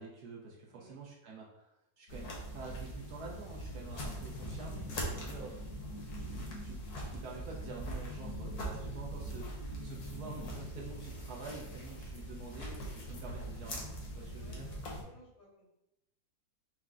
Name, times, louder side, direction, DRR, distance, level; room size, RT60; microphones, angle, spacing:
voice 1, 0.0-5.7 6.2-9.5 9.8-13.9 14.2-14.7, right 4 dB, 70° right, -2 dB, 1.0 m, -48 dB
sound 1, 2.1-15.0, equal, 60° left, 1.3 m, -42 dB
voice 2, 9.0-9.3 13.2-13.7 14.4-15.7, equal, 80° left, -3 dB, 2.0 m, -60 dB
4.6 x 2.1 x 3.6 m, 0.88 s
omnidirectional pair, 2.0 m